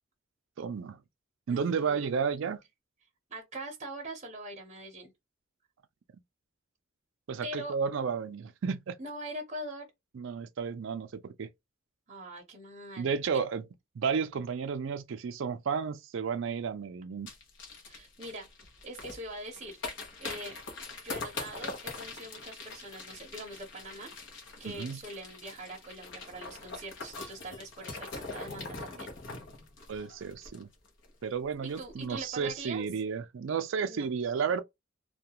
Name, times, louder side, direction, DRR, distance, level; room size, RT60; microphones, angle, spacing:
voice 1, 0.6-1.0 1.5-2.6 7.3-9.0 10.1-11.5 13.0-13.6 14.0-17.3 24.6-25.0 29.9-30.7 31.2-34.6, right 6 dB, 65° right, 0.4 m, -32 dB
voice 2, 1.5-2.1 3.3-5.1 7.4-7.7 9.0-9.9 12.1-13.1 17.9-18.5 18.8-19.8 20.2-20.6 21.0-24.1 24.6-29.1 31.6-32.9 33.9-34.1, right 1 dB, 35° right, 0.7 m, -43 dB
sound 1, 17.3-31.1 31.3-31.4 31.7-32.0 32.4-32.5, left 3 dB, 65° left, 0.8 m, -43 dB
2.3 x 2.2 x 2.8 m
head